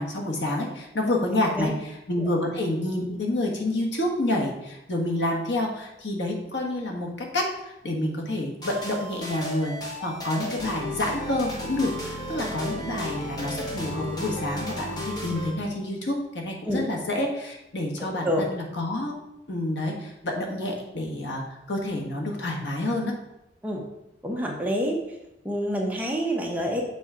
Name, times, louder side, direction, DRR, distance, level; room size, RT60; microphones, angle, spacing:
voice 1, 0.0-1.7 2.1-9.7 10.0-19.2 19.5-23.1, left 1 dB, 80° left, 0 dB, 1.4 m, -28 dB
sound 1, 8.6-15.5, equal, 20° left, 1.1 m, -34 dB
voice 2, 24.2-25.2 25.4-26.8, equal, 10° right, -1 dB, 0.9 m, -27 dB
7.1 x 4.1 x 4.9 m, 0.88 s
head